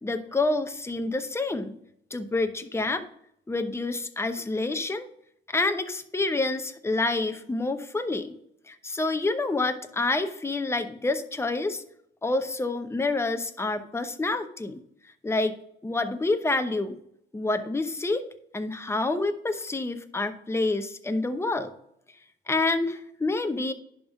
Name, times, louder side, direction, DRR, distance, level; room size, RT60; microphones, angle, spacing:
voice 1, 0.0-1.7 2.1-3.0 3.5-5.1 5.5-8.3 8.7-11.8 12.2-14.8 15.2-15.6 15.8-16.9 17.3-18.2 18.5-21.7 22.5-23.7, left 2 dB, 15° left, 8 dB, 0.8 m, -28 dB
10.5 x 3.7 x 6.0 m, 0.73 s
cardioid pair, 90°, 20 cm